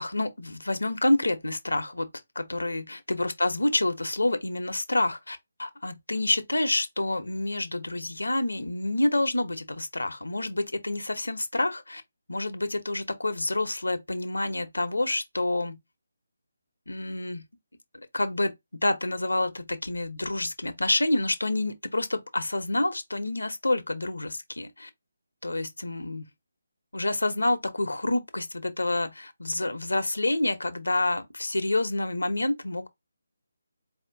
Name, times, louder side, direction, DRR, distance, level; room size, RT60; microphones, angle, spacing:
voice 1, 0.0-2.1 2.3-12.0 12.3-15.8 16.9-17.4 18.1-24.9 25.4-26.3 26.9-32.9, left 2 dB, 85° left, 1.0 m, -28 dB
4.4 x 2.9 x 2.7 m
figure-of-eight pair, 155°, 0 cm